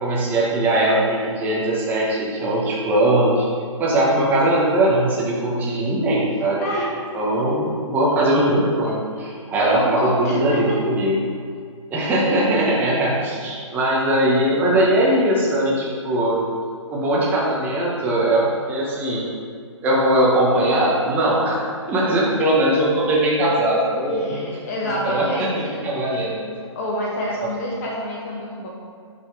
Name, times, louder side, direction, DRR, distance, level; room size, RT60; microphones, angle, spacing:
voice 1, 0.0-3.5 3.8-6.6 7.1-11.2 11.9-16.4 16.9-19.2 19.8-24.4 25.0-26.4, right 1 dB, 10° right, -5 dB, 0.9 m, -20 dB
voice 2, 6.6-6.9 9.6-11.0 24.1-25.8 26.1-26.2 26.7-28.7, equal, 30° left, -2 dB, 1.0 m, -27 dB
5.8 x 3.9 x 4.6 m, 2.2 s
hypercardioid pair, 155°, 16 cm